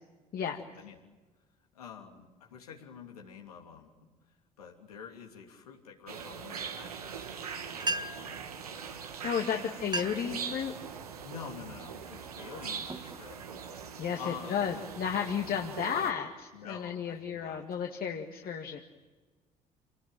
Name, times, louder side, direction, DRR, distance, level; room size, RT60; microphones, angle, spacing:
voice 1, 0.4-1.1 1.7-3.9 4.6-7.3 7.9-8.4 9.5-9.9 11.2-13.4 14.1-14.7 16.5-17.7, left 7 dB, 85° left, 2 dB, 3.0 m, -47 dB
sound 1, 6.1-16.1, right 6 dB, 90° right, 1.6 m, -42 dB
sound 2, 7.8-8.4 9.3-9.4 9.8-10.4 10.8-11.2 11.8-12.1 12.6-13.9, right 2 dB, 25° right, 1.7 m, -36 dB
voice 2, 9.2-10.7 14.0-18.8, left 7 dB, 55° left, 2 dB, 2.1 m, -33 dB
28.0 x 19.5 x 9.3 m, 1.3 s
hypercardioid pair, 55°, 19 cm